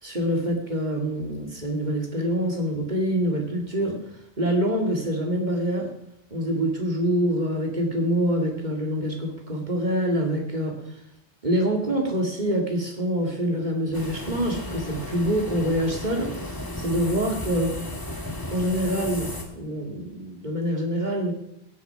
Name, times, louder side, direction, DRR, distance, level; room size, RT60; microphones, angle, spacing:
voice 1, 0.0-4.0 4.4-5.9 6.3-10.8 11.4-16.3 16.8-17.8 18.5-21.3, equal, 40° right, 2 dB, 2.4 m, -25 dB
sound 1, 13.9-19.4, left 1 dB, 20° left, 1.7 m, -34 dB
16.5 x 8.3 x 5.7 m, 0.81 s
omnidirectional pair, 1.1 m